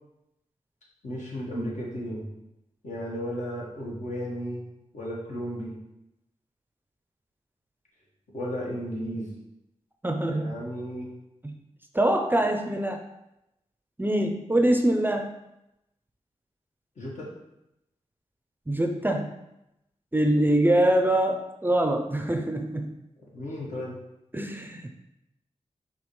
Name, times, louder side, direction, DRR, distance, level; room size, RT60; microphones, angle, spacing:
voice 1, 1.0-2.3 2.8-4.6 4.9-5.7 8.3-9.3 10.3-11.1 17.0-17.3 23.3-23.9, equal, 70° left, -4 dB, 1.4 m, -34 dB
voice 2, 10.0-10.5 11.4-11.5 11.9-13.0 14.0-15.3 18.7-19.3 20.1-22.9 24.3-24.9, right 1 dB, 15° right, 4 dB, 0.5 m, -24 dB
5.1 x 2.9 x 3.2 m, 0.87 s
cardioid pair, 45°, 13 cm